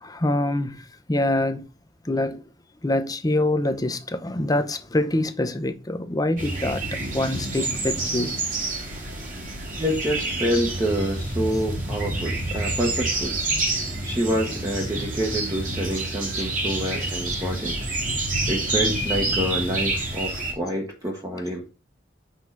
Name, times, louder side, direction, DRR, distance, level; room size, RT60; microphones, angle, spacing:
voice 1, 0.0-1.6 2.0-2.4 2.8-6.8 7.1-8.4 10.5-10.7 14.8-14.9, left 1 dB, 20° left, 0.7 m, -25 dB
sound 1, 6.4-20.5, right 2 dB, 45° right, 2.2 m, -28 dB
voice 2, 9.8-13.4 14.0-17.8 18.5-21.7, equal, 20° right, 1.1 m, -27 dB
6.1 x 3.9 x 5.8 m
head